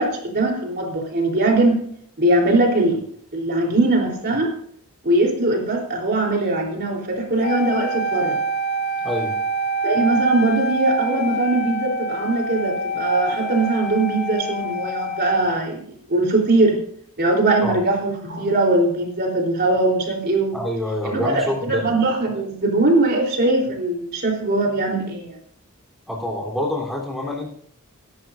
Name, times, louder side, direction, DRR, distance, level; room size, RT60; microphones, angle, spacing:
voice 1, 0.0-1.8 2.2-3.0 3.3-4.5 5.0-8.4 9.8-15.8 16.1-16.8 17.2-20.6 21.0-25.3, right 2 dB, 50° right, 0 dB, 3.5 m, -21 dB
Wind instrument woodwind instrument, 7.4-15.7, right 1 dB, 50° left, 1.7 m, -26 dB
voice 2, 9.0-9.4 17.6-17.8 20.5-21.9 26.1-27.5, left 1 dB, ahead, -2 dB, 3.5 m, -26 dB
23.5 x 11.5 x 2.6 m, 0.63 s
head